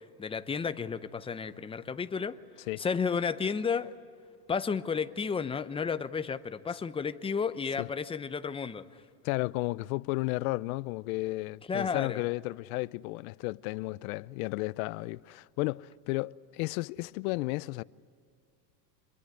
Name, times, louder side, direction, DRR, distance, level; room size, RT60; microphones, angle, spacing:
voice 1, 0.2-2.4 2.8-3.9 4.5-9.0 11.7-12.2, left 6 dB, 10° left, 0.7 m, -32 dB
voice 2, 9.2-17.8, left 21 dB, 60° left, 0.7 m, -33 dB
26.0 x 22.5 x 9.7 m
supercardioid pair, 125°, 49 cm